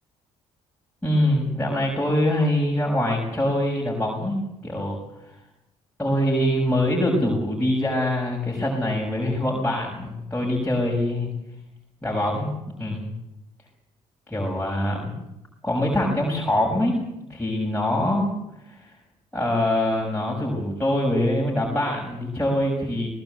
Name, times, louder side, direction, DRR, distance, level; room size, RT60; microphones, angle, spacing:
voice 1, 1.0-5.0 6.0-11.3 12.0-12.5 12.8-13.1 14.3-15.1 15.6-17.0 17.3-18.3 18.7-18.9 19.3-23.1, left 1 dB, 10° left, -3 dB, 6.6 m, -24 dB
20.0 x 19.5 x 8.1 m, 0.90 s
supercardioid pair, 75°, 14 cm